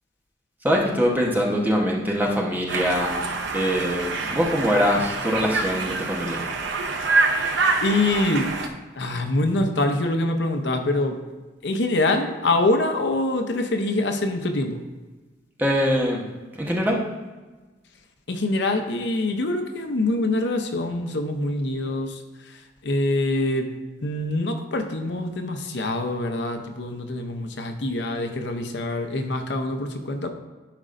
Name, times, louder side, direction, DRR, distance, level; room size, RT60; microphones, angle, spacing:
voice 1, 0.6-6.5 15.6-16.2 16.6-17.0, equal, 10° right, -2 dB, 1.0 m, -23 dB
Conversation, 2.7-8.7, right 3 dB, 70° right, 0.7 m, -26 dB
voice 2, 7.8-8.6 9.0-11.1 11.6-14.8 18.3-22.1 22.8-23.7 24.0-30.3, left 2 dB, 65° left, 6 dB, 0.7 m, -24 dB
11.5 x 5.0 x 2.5 m, 1.2 s
head